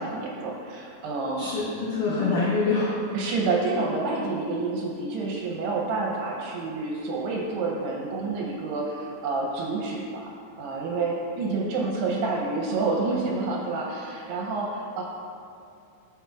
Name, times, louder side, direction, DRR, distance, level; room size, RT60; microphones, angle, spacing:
voice 1, 0.0-1.5 2.1-2.4 3.1-10.3 10.6-15.0, right 3 dB, 80° right, -2 dB, 2.6 m, -28 dB
voice 2, 1.4-3.0, left 4 dB, 80° left, -7 dB, 1.9 m, -25 dB
12.5 x 6.0 x 2.4 m, 2.5 s
omnidirectional pair, 5.2 m